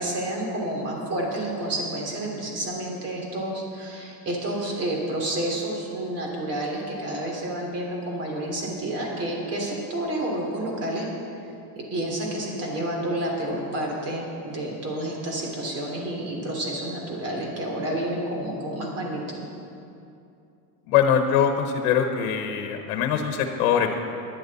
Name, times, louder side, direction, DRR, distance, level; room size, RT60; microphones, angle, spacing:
voice 1, 0.0-11.1 11.8-19.5, right 1 dB, 35° right, -1 dB, 3.0 m, -30 dB
voice 2, 20.9-24.0, left 8 dB, 85° left, 5 dB, 1.2 m, -22 dB
18.5 x 11.0 x 4.1 m, 2.6 s
cardioid pair, 165°, 42 cm